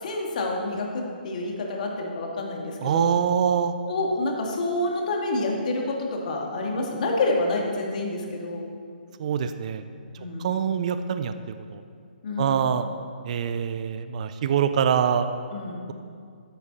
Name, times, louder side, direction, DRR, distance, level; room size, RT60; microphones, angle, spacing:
voice 1, 0.0-3.1 3.9-8.6 10.2-10.5 12.2-12.6 15.5-15.8, left 2 dB, 50° left, 0 dB, 2.2 m, -28 dB
voice 2, 2.8-3.7 9.2-9.8 10.4-11.8 12.4-12.8 13.2-15.3, right 8 dB, 45° right, 10 dB, 0.6 m, -24 dB
12.5 x 10.5 x 4.2 m, 2.3 s
figure-of-eight pair, 140°, 5 cm